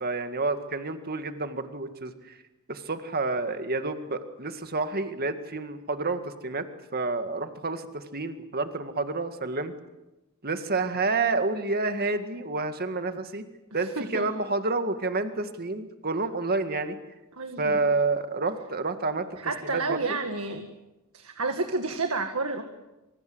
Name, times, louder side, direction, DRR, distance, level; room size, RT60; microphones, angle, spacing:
voice 1, 0.0-2.1 2.7-9.7 10.4-13.4 13.7-17.0 17.6-19.3 19.6-20.0, right 3 dB, 45° right, 8 dB, 2.0 m, -29 dB
voice 2, 13.8-14.3 17.4-17.8 19.4-20.7 21.1-22.6, right 3 dB, 70° right, 5 dB, 2.0 m, -30 dB
27.0 x 25.5 x 8.0 m, 1.0 s
head